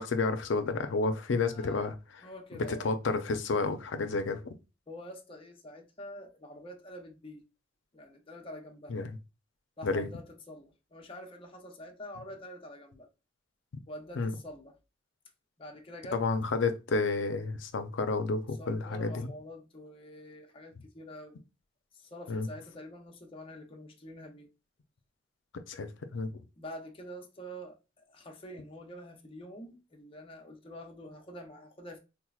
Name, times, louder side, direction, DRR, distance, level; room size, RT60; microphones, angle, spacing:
voice 1, 0.0-2.0 2.7-4.5 8.9-9.2 9.8-10.1 14.2-14.3 16.1-19.3 22.3-22.5 25.7-26.3, left 3 dB, 80° left, 0.5 m, -30 dB
voice 2, 1.3-1.9 2.2-2.9 4.9-7.4 7.9-9.0 9.8-13.1 13.9-14.8 15.6-16.2 18.6-21.4 21.9-24.5 26.6-32.0, equal, 30° left, 0.6 m, -46 dB
4.4 x 2.0 x 2.3 m
head